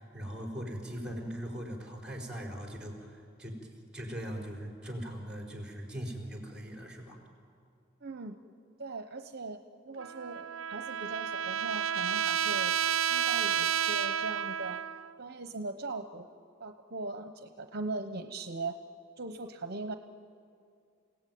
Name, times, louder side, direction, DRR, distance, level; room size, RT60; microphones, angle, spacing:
voice 1, 0.0-3.1 3.4-3.6 3.9-7.2, equal, 5° right, 1 dB, 4.6 m, -40 dB
voice 2, 8.0-8.4 8.8-9.6 9.9-12.7 13.1-14.8 15.2-16.3 16.6-18.8 19.2-20.0, right 3 dB, 50° right, 7 dB, 1.0 m, -39 dB
Trumpet, 10.0-15.1, right 9 dB, 85° right, 0.5 m, -31 dB
30.0 x 17.0 x 9.4 m, 2.4 s
head